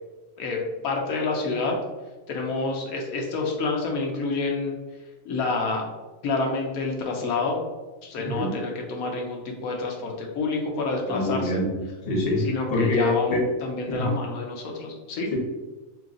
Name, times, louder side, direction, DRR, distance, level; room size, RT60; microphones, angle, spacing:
voice 1, 0.4-1.8 2.3-4.8 5.2-5.9 6.2-7.6 8.0-11.6 12.4-15.3, left 3 dB, 85° left, 0 dB, 1.1 m, -28 dB
voice 2, 8.2-8.5 11.1-13.4 13.9-14.1, left 2 dB, 45° left, -2 dB, 1.1 m, -25 dB
3.1 x 2.8 x 3.7 m, 1.2 s
omnidirectional pair, 1.4 m